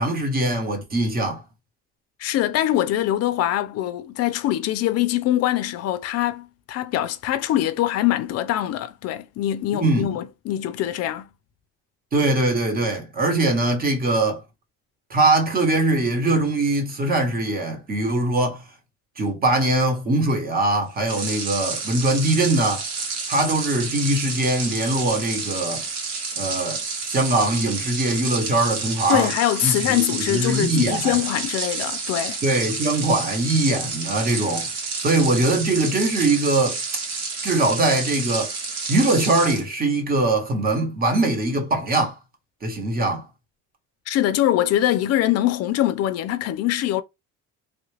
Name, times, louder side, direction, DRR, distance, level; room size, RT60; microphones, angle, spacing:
voice 1, 0.0-1.4 9.7-10.1 12.1-14.4 15.1-18.6 19.2-22.8 23.3-25.8 26.4-29.3 29.6-31.2 32.4-34.7 35.0-36.8 37.4-38.5 38.9-42.1 42.6-43.3, right 2 dB, 30° right, 1.1 m, -22 dB
voice 2, 2.2-11.3 29.1-32.4 44.1-47.0, left 13 dB, 55° left, 0.5 m, -23 dB
sound 1, 21.0-39.6, right 4 dB, 60° right, 1.2 m, -30 dB
3.3 x 2.4 x 3.3 m
cardioid pair, 150°, 30 cm